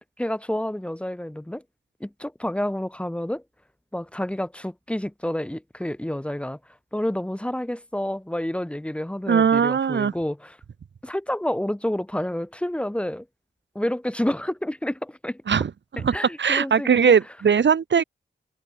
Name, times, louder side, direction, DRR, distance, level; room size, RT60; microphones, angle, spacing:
voice 1, 0.2-1.6 2.0-3.4 3.9-6.6 6.9-10.6 11.0-13.3 13.8-15.4 16.0-17.2, left 1 dB, 5° left, 5.4 m, -29 dB
voice 2, 9.3-10.1 15.5-15.7 16.0-18.0, right 7 dB, 75° right, 5.6 m, -20 dB
wide cardioid pair, 180°, 19 cm